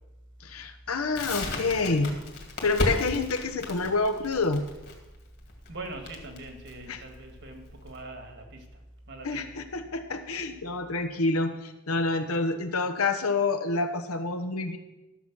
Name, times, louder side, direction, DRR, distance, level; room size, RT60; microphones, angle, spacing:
voice 1, 0.4-2.1 2.6-4.7 6.9-7.0 9.2-14.8, left 3 dB, 85° left, 7 dB, 1.1 m, -28 dB
Crackle, 1.1-8.0, left 2 dB, 50° left, 2.2 m, -35 dB
voice 2, 5.7-8.7 9.1-9.5, right 2 dB, 55° right, 5 dB, 1.7 m, -42 dB
12.5 x 7.2 x 6.0 m, 1.1 s
head